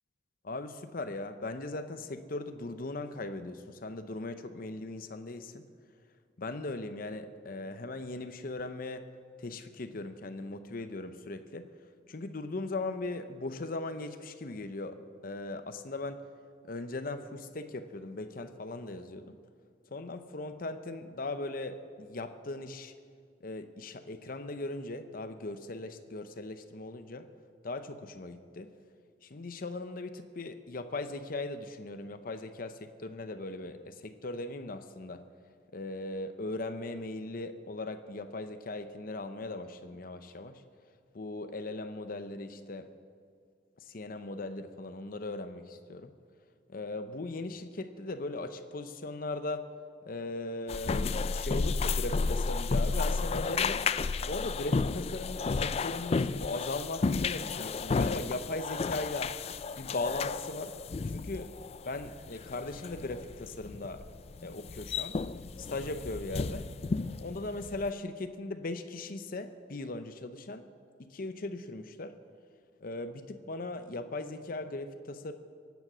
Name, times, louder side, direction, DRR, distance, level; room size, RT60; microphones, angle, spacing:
voice 1, 0.4-5.7 6.4-9.1 9.4-11.7 12.1-15.0 15.2-16.2 16.7-19.4 19.9-22.9 23.4-27.3 27.6-28.7 29.2-35.2 35.7-40.6 41.1-42.9 43.8-46.1 46.7-49.7 50.1-53.8 54.3-59.3 59.8-60.7 61.1-61.5 61.9-64.0 64.4-65.2 65.6-66.7 67.2-70.7 71.0-72.1 72.8-75.3, left 2 dB, 55° left, 9 dB, 0.7 m, -38 dB
sound 1, 50.7-67.9, left 4 dB, 35° left, 0.4 m, -32 dB
23.5 x 9.3 x 6.2 m, 2.2 s
head